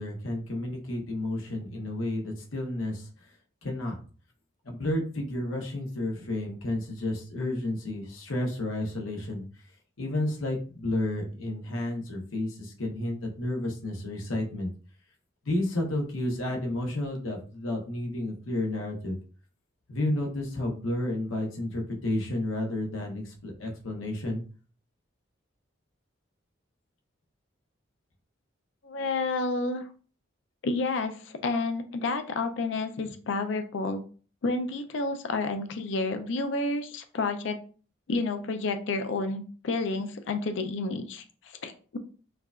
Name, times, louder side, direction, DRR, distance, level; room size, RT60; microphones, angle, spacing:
voice 1, 0.0-3.1 3.6-4.0 4.6-9.4 10.0-14.7 15.4-19.2 19.9-24.4, left 1 dB, 85° left, 1 dB, 0.9 m, -31 dB
voice 2, 28.8-29.8 30.6-34.0 34.4-37.6 38.1-42.0, left 3 dB, 65° left, 8 dB, 0.4 m, -30 dB
4.6 x 2.3 x 2.4 m, 0.40 s
head